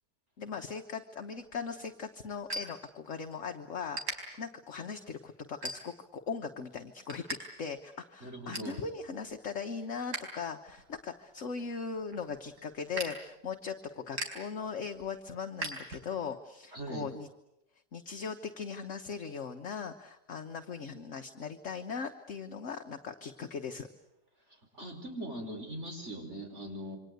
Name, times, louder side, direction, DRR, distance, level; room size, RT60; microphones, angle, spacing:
voice 1, 0.4-17.3 17.9-23.9, left 5 dB, 50° left, 5 dB, 1.4 m, -39 dB
sound 1, 1.4-3.4 3.7-4.2 4.7-5.0 5.5-6.2 6.6-7.4 7.7-7.8 8.1-8.8 9.2-10.2 10.6-16.4, right 2 dB, 70° right, 5.0 m, -41 dB
voice 2, 8.2-8.8 16.7-17.1 24.7-27.0, right 1 dB, 40° right, 4 dB, 5.1 m, -40 dB
27.5 x 24.5 x 8.0 m, 0.88 s
omnidirectional pair, 1.8 m